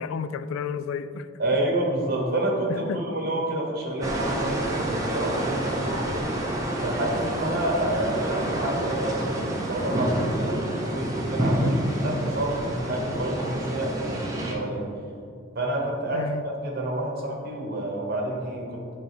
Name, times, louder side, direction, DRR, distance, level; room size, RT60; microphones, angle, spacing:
voice 1, 0.0-1.3 2.7-3.1 11.6-11.8 16.1-16.4, left 6 dB, 85° left, 13 dB, 0.3 m, -32 dB
voice 2, 1.4-6.2 6.8-14.9 15.5-18.9, right 1 dB, 50° right, -1 dB, 1.1 m, -29 dB
sound 1, 4.0-14.5, right 1 dB, 15° right, 0.8 m, -28 dB
9.1 x 3.4 x 3.4 m, 2.4 s
head